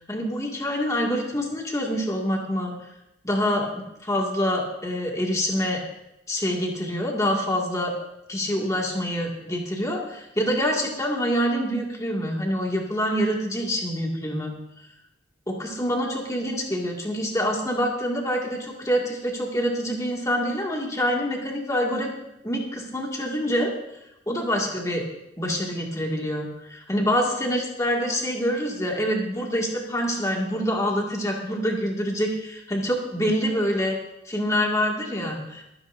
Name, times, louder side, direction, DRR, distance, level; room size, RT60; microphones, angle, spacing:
voice 1, 0.1-2.8 3.2-5.8 6.3-8.0 8.3-14.5 15.5-22.1 22.4-23.7 24.3-25.1 25.4-34.0 34.3-35.6, equal, 15° left, -1 dB, 2.1 m, -26 dB
24.0 x 9.7 x 2.6 m, 0.89 s
head